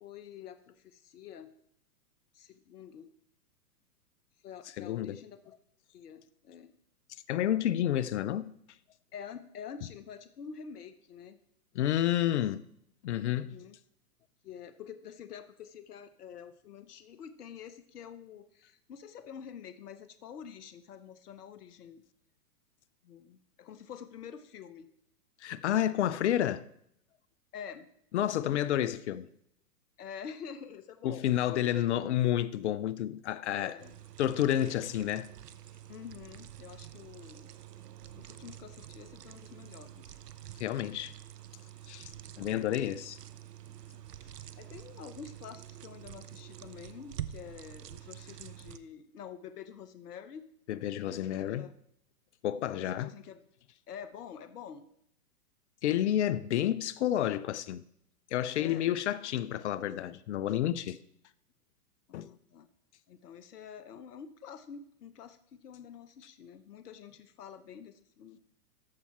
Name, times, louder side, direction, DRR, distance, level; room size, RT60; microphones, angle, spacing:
voice 1, 0.0-1.5 2.3-3.1 4.4-5.4 5.9-6.7 9.1-11.4 13.3-13.8 14.4-22.0 23.0-24.9 27.5-27.9 28.2-28.7 30.0-31.3 31.7-31.8 33.6-33.9 35.9-37.5 38.1-40.2 42.1-42.3 43.9-44.0 44.6-50.5 51.2-51.7 52.7-53.4 53.9-54.9 58.6-58.9 62.1-62.7 63.1-68.4, left 7 dB, 75° left, 0.9 m, -47 dB
voice 2, 4.8-5.2 7.3-8.5 11.7-12.6 13.0-13.6 25.4-26.6 28.1-29.3 31.0-33.8 34.2-35.3 40.6-41.1 41.9-42.1 42.4-43.2 50.7-51.7 52.4-53.1 55.8-57.8 58.3-61.0 62.1-62.3, left 12 dB, 50° left, 0.5 m, -30 dB
sound 1, 33.8-48.8, right 11 dB, 85° right, 0.7 m, -47 dB
14.0 x 5.7 x 4.3 m
hypercardioid pair, 120°, 46 cm